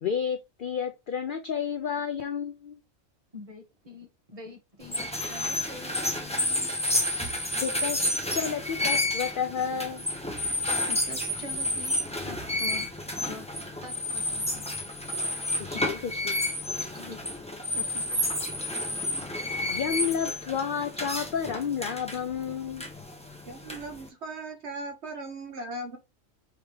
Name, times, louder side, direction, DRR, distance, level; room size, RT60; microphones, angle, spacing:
voice 1, 0.0-2.8 7.6-10.0 15.6-15.9 16.3-16.4 19.7-22.8, left 7 dB, 60° left, 0.5 m, -31 dB
voice 2, 3.3-6.7 10.7-12.0 12.2-12.9 13.3-13.5 13.8-14.7 15.7-16.0 17.0-17.2 17.7-18.2, left 2 dB, 30° right, 1.3 m, -44 dB
sound 1, 4.8-24.1, left 1 dB, 5° left, 0.8 m, -31 dB
voice 3, 23.5-26.0, right 2 dB, 60° right, 1.1 m, -38 dB
4.8 x 3.4 x 3.1 m
omnidirectional pair, 1.3 m